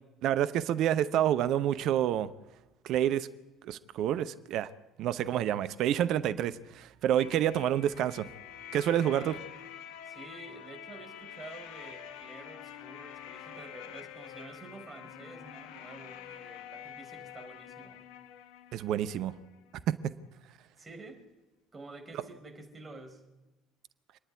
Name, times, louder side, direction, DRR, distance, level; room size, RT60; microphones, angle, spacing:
voice 1, 0.2-2.3 2.8-3.3 3.6-4.7 5.0-8.3 8.7-9.3 18.7-19.3 19.9-20.1, right 11 dB, 55° right, 0.8 m, -28 dB
sound 1, 7.2-19.8, left 10 dB, 60° left, 0.9 m, -47 dB
voice 2, 9.0-9.5 10.0-18.1 20.8-21.3 21.7-23.3, right 3 dB, 25° right, 4.4 m, -49 dB
26.5 x 10.0 x 9.6 m
figure-of-eight pair, 55°, 0 cm